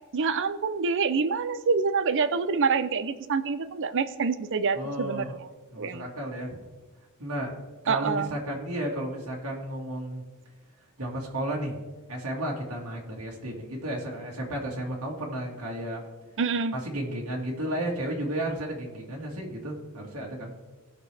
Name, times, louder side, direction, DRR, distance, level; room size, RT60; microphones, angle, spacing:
voice 1, 0.1-5.3 5.8-6.0 7.9-8.3 16.4-16.7, right 5 dB, 60° right, 13 dB, 0.6 m, -26 dB
voice 2, 4.7-5.4 5.7-6.6 7.2-7.5 7.8-10.2 11.0-11.8 12.1-16.1 16.7-20.5, right 1 dB, 90° right, -2 dB, 2.0 m, -33 dB
17.5 x 6.0 x 3.4 m, 1.3 s
head